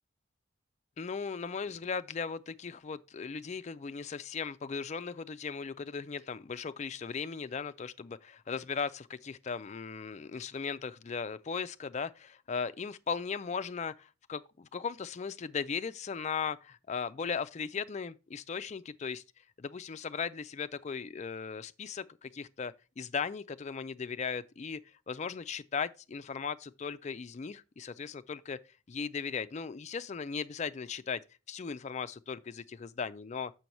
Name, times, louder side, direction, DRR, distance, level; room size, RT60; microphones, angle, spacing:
voice 1, 1.0-28.6 28.9-31.2 31.5-33.5, left 5 dB, 35° left, 0.4 m, -37 dB
7.0 x 4.5 x 5.2 m
head